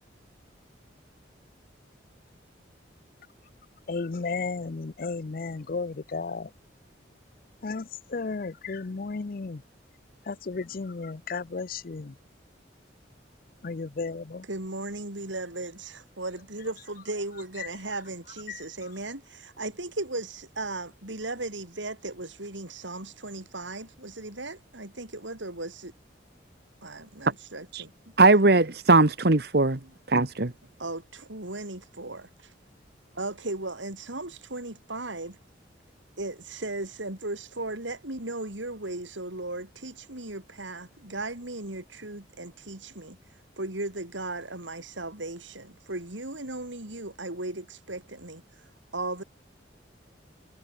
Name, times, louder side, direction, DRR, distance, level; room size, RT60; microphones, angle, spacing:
voice 1, 3.9-6.5 7.6-7.8 8.1-9.6 10.3-12.1 13.6-14.4, left 4 dB, 50° left, 0.5 m, -33 dB
voice 2, 14.4-25.9 26.8-27.9 29.8-29.9 30.8-32.5 33.1-35.4 36.2-43.2 43.6-48.4 48.9-49.2, right 2 dB, 80° right, 5.4 m, -36 dB
voice 3, 28.2-29.8 30.1-30.5, right 3 dB, 55° right, 1.4 m, -19 dB
head